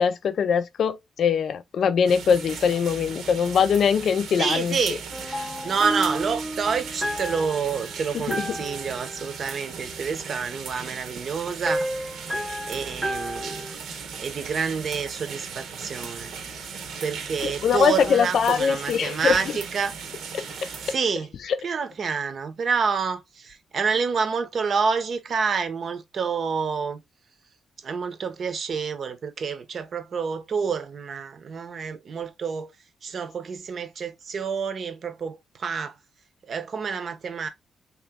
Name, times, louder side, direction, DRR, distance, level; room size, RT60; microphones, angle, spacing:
voice 1, 0.0-4.8 5.4-5.5 8.1-8.5 17.4-19.4 20.3-20.7 21.5-21.6, left 7 dB, 60° left, 0.4 m, -22 dB
sound 1, 2.1-21.0, right 6 dB, 80° right, 0.9 m, -38 dB
voice 2, 4.4-5.0 5.6-13.7 14.2-16.3 17.0-19.9 20.9-21.3 21.6-27.0 27.8-32.7 33.0-35.9 36.4-37.5, right 5 dB, 50° right, 0.7 m, -28 dB
sound 2, 5.1-10.3 11.7-13.8, right 1 dB, 5° right, 0.6 m, -32 dB
3.4 x 2.9 x 3.5 m
cardioid pair, 130°, 0 cm